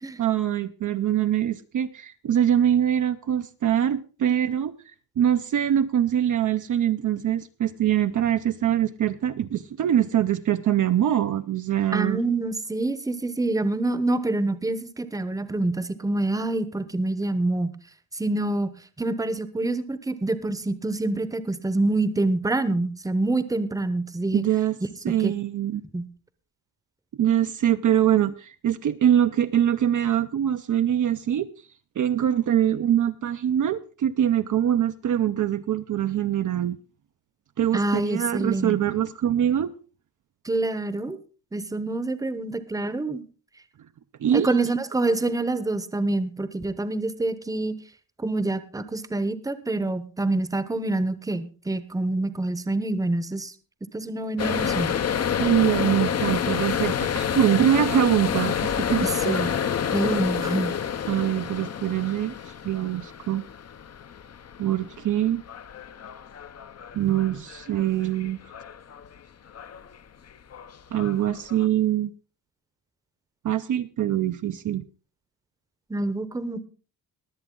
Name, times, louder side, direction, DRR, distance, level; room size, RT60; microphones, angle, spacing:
voice 1, 0.2-4.7 5.2-12.2 24.3-24.8 25.0-25.8 27.2-31.5 32.0-36.8 37.6-39.7 44.2-44.5 55.4-59.6 61.1-62.3 62.6-63.4 64.6-65.4 66.9-68.4 70.9-72.1 73.4-74.9, right 10 dB, 50° right, 0.6 m, -23 dB
voice 2, 11.9-17.7 18.1-18.7 19.0-24.4 25.1-25.3 25.9-26.1 37.7-38.8 40.4-41.2 41.5-43.2 44.3-47.7 48.2-53.5 53.9-55.0 59.0-59.5 59.9-60.8 75.9-76.7, right 2 dB, 10° right, 0.8 m, -26 dB
sound 1, 54.4-69.2 69.5-70.0 70.3-71.7, left 8 dB, 40° left, 0.7 m, -29 dB
22.0 x 8.0 x 3.7 m
cardioid pair, 135°, 40 cm